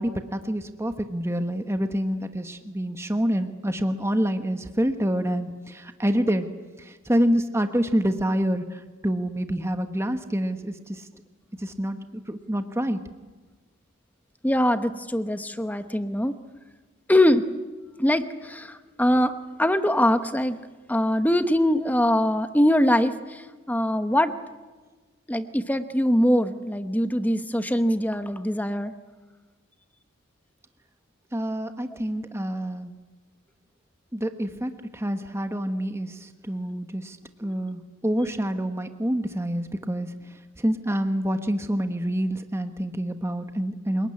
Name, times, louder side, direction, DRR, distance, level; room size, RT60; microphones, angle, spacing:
voice 1, 0.0-6.5 6.8-11.1 11.6-13.0 31.3-33.0 34.1-44.1, equal, 10° right, 7 dB, 1.2 m, -27 dB
voice 2, 14.4-16.3 17.1-17.5 18.0-19.3 19.6-20.6 20.9-24.3 25.3-28.9 37.4-37.5, left 1 dB, 10° left, 10 dB, 1.0 m, -22 dB
28.0 x 19.0 x 9.8 m, 1.3 s
head